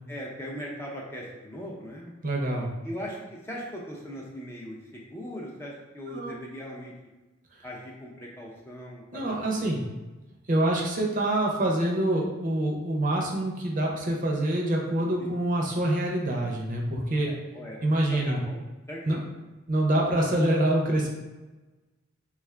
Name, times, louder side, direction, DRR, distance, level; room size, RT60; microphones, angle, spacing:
voice 1, 0.1-2.1 2.8-6.9 7.6-9.7 15.2-15.3 17.3-17.8 18.1-18.6 18.9-19.3, equal, 10° left, -3 dB, 0.4 m, -39 dB
voice 2, 2.2-2.7 6.1-6.3 9.1-9.8 10.5-17.3 17.8-18.4 19.1-19.2 19.7-21.1, right 1 dB, 40° right, -1 dB, 0.6 m, -26 dB
3.5 x 2.4 x 3.2 m, 1.1 s
head